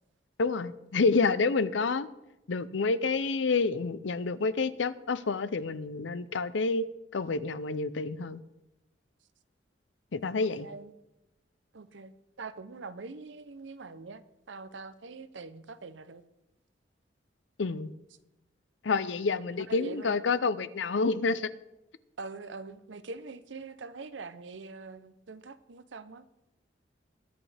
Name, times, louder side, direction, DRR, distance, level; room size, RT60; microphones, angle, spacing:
voice 1, 0.4-2.1 2.5-6.9 7.1-8.4 10.1-10.7 17.6-17.9 18.8-21.5, left 4 dB, 85° left, 0.6 m, -28 dB
voice 2, 10.4-10.9 11.7-12.1 12.4-14.2 14.5-16.2 19.5-20.2 22.2-26.2, right 4 dB, 85° right, 0.7 m, -43 dB
21.5 x 8.6 x 3.4 m
head